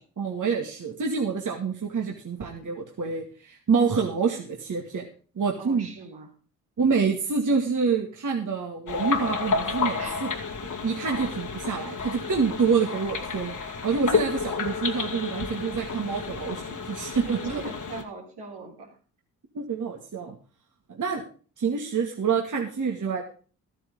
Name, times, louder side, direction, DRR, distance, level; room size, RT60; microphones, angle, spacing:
voice 1, 0.0-5.0 5.4-5.9 6.8-10.3 10.8-13.6 13.8-17.5 19.5-20.4 20.9-21.2 21.6-23.2, right 5 dB, 45° right, 1 dB, 2.2 m, -27 dB
voice 2, 5.6-6.3 10.0-10.3 17.0-19.0, right 4 dB, 70° right, 0 dB, 3.7 m, -41 dB
sound 1, 8.9-18.0, left 5 dB, 45° left, 2.2 m, -31 dB
13.0 x 8.8 x 5.4 m, 0.39 s
hypercardioid pair, 45°, 41 cm